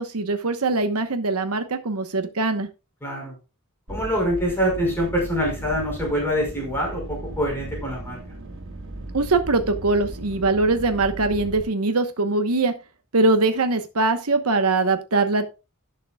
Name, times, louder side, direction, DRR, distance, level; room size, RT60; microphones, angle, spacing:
voice 1, 0.0-2.7 9.1-12.7 13.1-15.5, right 3 dB, 75° right, 7 dB, 1.1 m, -22 dB
voice 2, 3.0-3.3 3.9-8.2, equal, 10° left, -1 dB, 5.2 m, -25 dB
sound 1, 3.9-11.6, right 1 dB, 60° right, 3.0 m, -36 dB
17.5 x 6.8 x 2.3 m, 0.29 s
head